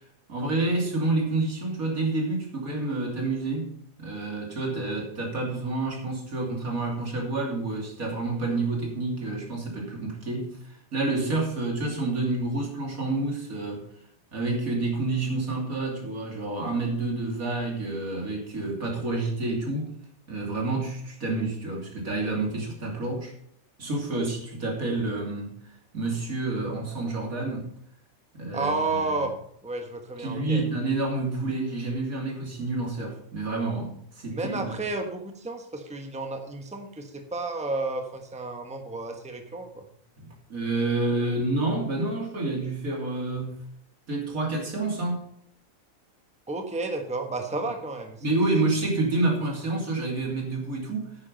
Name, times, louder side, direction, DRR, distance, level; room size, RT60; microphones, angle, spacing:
voice 1, 0.3-3.7 4.0-13.8 14.3-19.9 20.3-23.3 23.8-25.5 25.9-27.7 28.3-29.3 30.2-34.7 40.2-43.6 44.1-45.2 48.2-51.1, right 2 dB, 80° right, 0 dB, 3.3 m, -28 dB
voice 2, 28.5-29.3 29.6-30.6 34.3-39.8 46.5-48.2, right 3 dB, 5° right, 4 dB, 1.2 m, -31 dB
9.7 x 9.6 x 5.3 m, 0.67 s
omnidirectional pair, 1.5 m